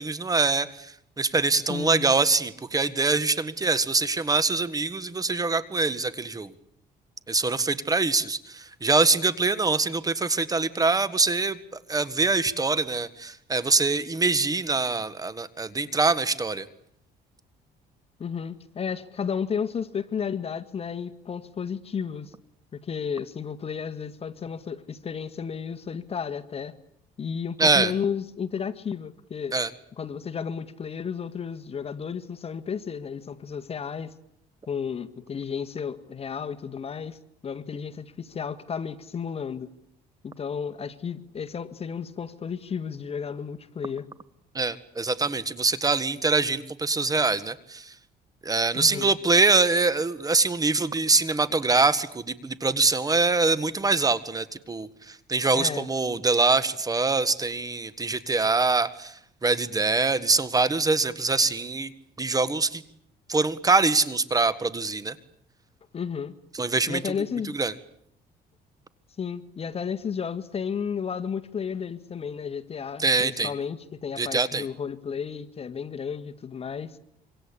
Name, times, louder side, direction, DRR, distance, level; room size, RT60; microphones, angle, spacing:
voice 1, 0.0-6.5 7.3-16.7 27.6-27.9 29.5-29.7 44.5-47.9 48.4-61.9 62.2-62.8 63.3-65.1 66.6-67.0 67.5-67.7 73.0-73.5 74.2-74.6, right 3 dB, 20° right, 1.6 m, -24 dB
voice 2, 1.7-2.1 18.2-22.3 22.7-26.7 27.2-29.5 30.0-34.1 34.7-37.2 37.4-39.7 40.2-44.1 48.8-49.1 55.5-55.9 65.9-66.3 66.9-67.5 69.2-77.0, left 6 dB, 35° left, 1.8 m, -33 dB
26.0 x 25.5 x 8.6 m
cardioid pair, 110°, 17 cm